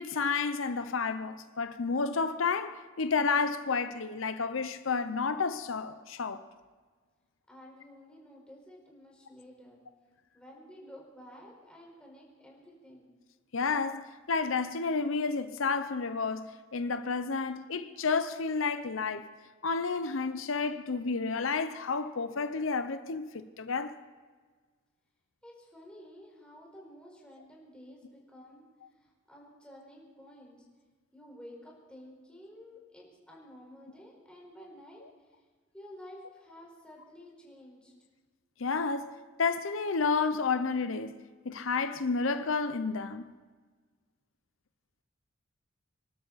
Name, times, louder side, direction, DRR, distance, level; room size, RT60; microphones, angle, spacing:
voice 1, 0.0-6.4 13.5-19.3 19.6-24.0 38.6-43.3, left 4 dB, 90° left, 0.8 m, -31 dB
voice 2, 7.5-9.8 10.3-13.1 25.4-28.6 28.9-30.6 31.1-35.0 35.3-35.4 35.7-37.9, equal, 5° left, 4.7 m, -52 dB
25.5 x 12.5 x 4.1 m
head